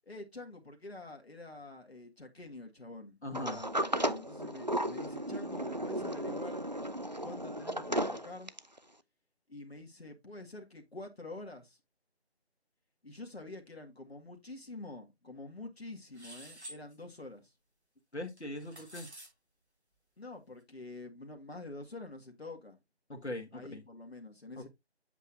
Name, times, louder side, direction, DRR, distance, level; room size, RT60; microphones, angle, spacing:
voice 1, 0.0-6.6 7.2-8.5 9.5-11.8 13.0-17.5 20.2-22.8 23.5-24.7, left 2 dB, 65° left, 1.9 m, -47 dB
voice 2, 3.2-3.6 18.1-19.1 23.1-23.8 24.6-24.7, left 1 dB, 85° left, 1.7 m, -41 dB
Sliding door, 3.3-8.8, right 1 dB, 40° right, 0.4 m, -35 dB
sound 1, 16.1-16.8 18.4-19.3, right 1 dB, 80° right, 4.8 m, -49 dB
8.1 x 7.4 x 2.5 m
figure-of-eight pair, 165°, 33 cm